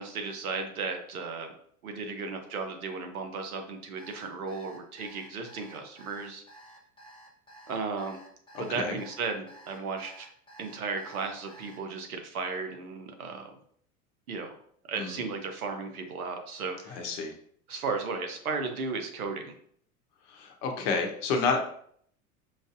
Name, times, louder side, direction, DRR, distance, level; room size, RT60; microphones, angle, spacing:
voice 1, 0.0-1.6 1.8-6.4 7.7-8.2 8.6-10.3 10.6-13.5 14.3-14.5 14.9-17.1 17.7-19.5, right 4 dB, 80° right, 4 dB, 0.8 m, -35 dB
Alarm, 4.0-11.8, right 1 dB, 10° left, 0.9 m, -52 dB
voice 2, 8.5-9.0 15.0-15.2 16.9-17.3 20.3-21.6, left 4 dB, 50° left, 4 dB, 0.9 m, -30 dB
5.1 x 2.6 x 2.4 m, 0.62 s
hypercardioid pair, 85°, 43 cm